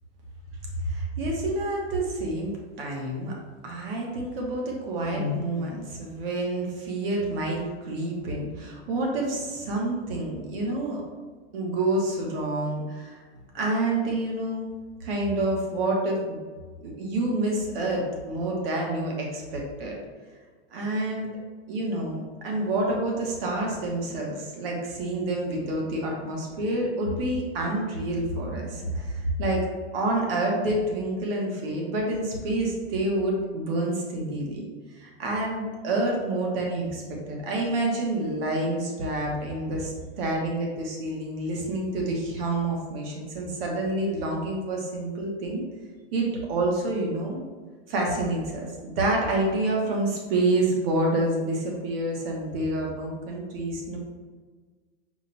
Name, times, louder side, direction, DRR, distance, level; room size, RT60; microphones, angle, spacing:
voice 1, 0.8-3.3 3.6-11.0 11.5-13.2 13.5-14.7 15.0-16.4 16.8-19.9 20.7-21.3 21.7-29.7 29.9-34.7 35.0-37.0 37.3-45.6 46.1-47.4 47.9-54.0, right 2 dB, 55° right, -1 dB, 1.2 m, -28 dB
5.2 x 2.4 x 4.0 m, 1.5 s
supercardioid pair, 170°, 34 cm